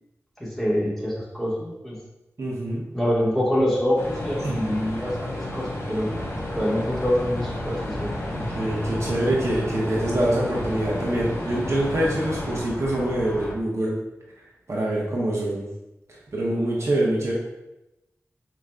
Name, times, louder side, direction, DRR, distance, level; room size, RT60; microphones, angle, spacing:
voice 1, 0.4-2.0 2.9-8.1, equal, 5° left, -6 dB, 1.4 m, -25 dB
voice 2, 2.4-2.8 4.4-4.6 8.2-13.9 14.7-15.6 16.1-17.3, right 1 dB, 60° right, -5 dB, 1.0 m, -25 dB
sound 1, 4.0-12.6, left 1 dB, 55° left, 1.1 m, -32 dB
sound 2, 6.1-13.5, left 1 dB, 25° left, 0.8 m, -37 dB
5.0 x 3.0 x 2.3 m, 0.94 s
wide cardioid pair, 60°, 6 cm